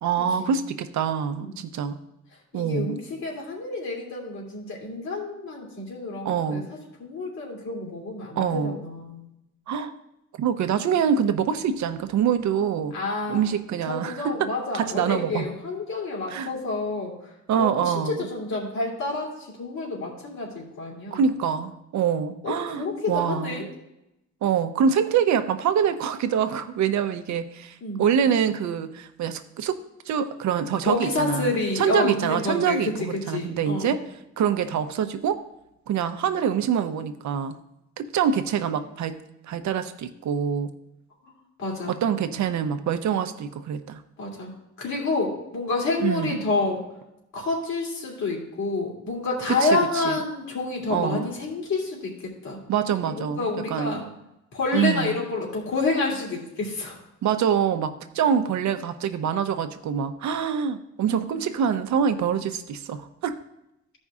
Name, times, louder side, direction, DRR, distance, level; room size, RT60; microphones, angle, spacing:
voice 1, 0.0-2.0 2.5-3.0 6.2-6.7 8.4-8.8 9.7-9.9 10.4-13.0 13.3-15.5 16.3-16.5 17.5-18.3 21.1-23.7 24.4-29.8 30.1-34.0 34.4-35.4 35.9-37.6 38.0-39.2 39.5-40.7 41.9-44.0 46.0-46.4 49.5-50.2 50.9-51.3 52.7-54.0 54.7-55.2 57.2-63.3, right 8 dB, 70° right, 9 dB, 0.8 m, -25 dB
voice 2, 2.5-9.2 12.9-13.5 13.9-17.3 17.6-21.2 22.4-23.7 27.8-28.0 30.8-32.9 33.3-33.9 41.6-42.0 44.2-44.5 44.8-46.8 47.3-52.6 53.1-54.0 54.5-57.0 61.1-61.4, left 3 dB, 70° left, -3 dB, 2.9 m, -29 dB
13.5 x 5.3 x 3.6 m, 0.89 s
cardioid pair, 90°, 30 cm